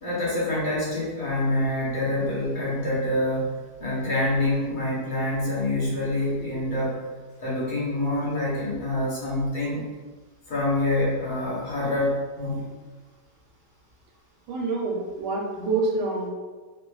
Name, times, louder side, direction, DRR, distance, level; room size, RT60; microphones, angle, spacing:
voice 1, 0.0-3.5 3.8-6.9 7.4-9.9 10.5-12.7, left 1 dB, 35° left, -8 dB, 0.9 m, -26 dB
voice 2, 14.5-16.3, right 3 dB, 85° right, -1 dB, 1.2 m, -27 dB
3.3 x 2.5 x 3.1 m, 1.4 s
omnidirectional pair, 1.9 m